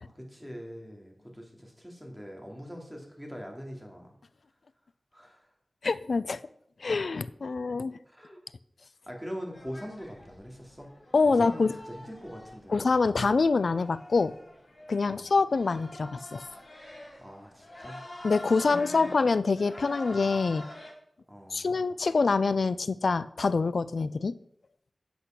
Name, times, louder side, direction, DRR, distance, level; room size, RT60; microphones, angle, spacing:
voice 1, 0.0-4.1 5.1-5.5 8.1-8.4 9.1-10.9 11.3-12.7 15.1-15.3 17.2-18.0 18.6-19.2 21.3-21.7, equal, 5° right, 0 dB, 2.6 m, -43 dB
voice 2, 5.8-6.4 6.8-8.0 11.1-11.7 12.7-14.3 14.9-16.4 18.2-20.6 21.5-24.3, left 4 dB, 70° left, 15 dB, 0.4 m, -25 dB
sound 1, 9.5-20.9, left 1 dB, 45° left, 3.6 m, -46 dB
8.5 x 7.8 x 5.8 m, 0.70 s
wide cardioid pair, 80°, 0 cm